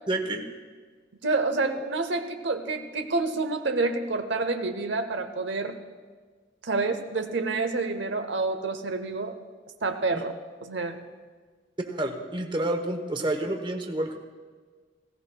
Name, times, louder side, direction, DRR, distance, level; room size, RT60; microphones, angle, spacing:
voice 1, 0.1-0.4 10.1-10.2 11.8-14.2, right 1 dB, 25° right, 5 dB, 0.9 m, -29 dB
voice 2, 1.2-5.8 6.6-9.4 9.8-10.4 10.6-11.0, right 3 dB, 85° right, 7 dB, 0.8 m, -28 dB
18.5 x 16.5 x 2.3 m, 1.5 s
head